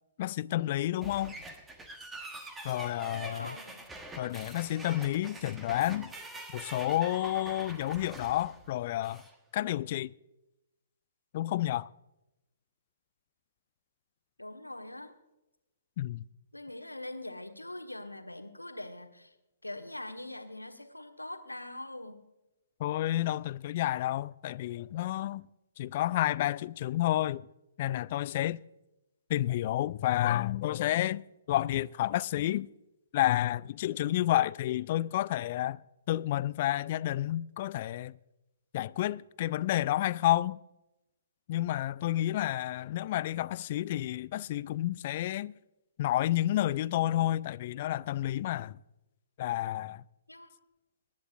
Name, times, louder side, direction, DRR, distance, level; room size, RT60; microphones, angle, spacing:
voice 1, 0.2-1.3 2.6-3.5 4.2-6.1 6.5-9.2 9.5-10.1 11.3-11.9 16.0-16.3 22.8-25.4 25.8-27.4 27.8-28.6 29.3-32.7 33.1-35.8 36.1-38.2 38.7-40.6 41.5-45.5 46.0-48.8 49.4-50.0, left 14 dB, 40° left, 0.3 m, -30 dB
sound 1, 1.0-9.3, right 2 dB, 10° right, 1.3 m, -45 dB
voice 2, 3.1-3.9 14.4-15.1 16.5-19.3 19.6-22.2 50.3-50.5, left 1 dB, 90° left, 1.5 m, -43 dB
23.0 x 10.5 x 2.5 m
figure-of-eight pair, 125°, 0 cm